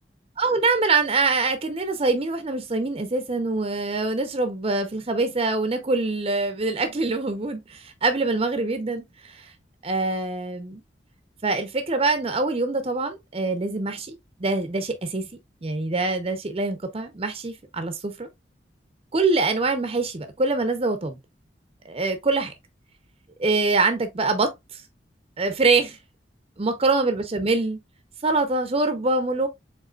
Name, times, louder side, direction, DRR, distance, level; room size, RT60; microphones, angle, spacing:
voice 1, 0.4-9.0 9.8-10.8 11.4-14.1 14.4-15.2 15.6-18.3 19.1-21.2 21.9-22.5 23.4-24.5 25.4-26.0 26.6-27.8 28.2-29.5, right 3 dB, 35° right, 0.6 m, -24 dB
4.9 x 3.6 x 2.3 m
head